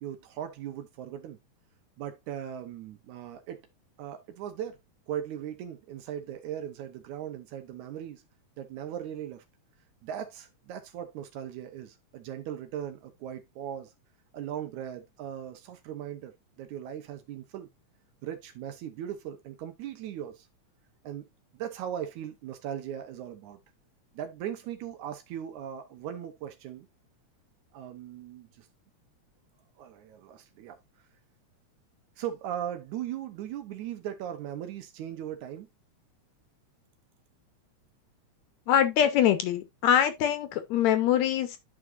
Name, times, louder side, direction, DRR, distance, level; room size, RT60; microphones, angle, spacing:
voice 1, 0.0-1.4 2.0-3.6 4.0-4.8 5.1-8.2 8.6-9.4 10.0-13.9 14.3-17.7 18.2-20.5 21.0-21.2 21.5-23.6 24.1-26.9 27.7-28.7 29.8-30.8 32.2-35.7, right 10 dB, 80° right, 2.3 m, -38 dB
voice 2, 38.7-41.6, left 10 dB, 75° left, 2.1 m, -24 dB
11.0 x 4.9 x 2.5 m
omnidirectional pair, 3.3 m